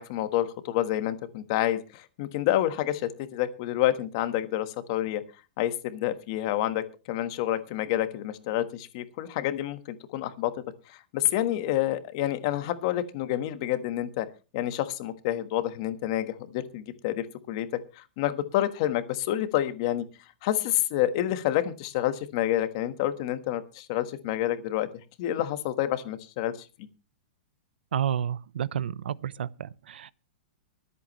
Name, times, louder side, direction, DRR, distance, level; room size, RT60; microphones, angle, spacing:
voice 1, 0.0-5.2 5.6-10.5 11.1-14.3 14.5-17.7 18.0-20.1 20.4-24.9 25.2-26.5, left 13 dB, 30° left, 1.3 m, -28 dB
voice 2, 27.9-30.1, right 9 dB, 85° right, 0.8 m, -30 dB
24.5 x 8.4 x 3.1 m
supercardioid pair, 180°, 5 cm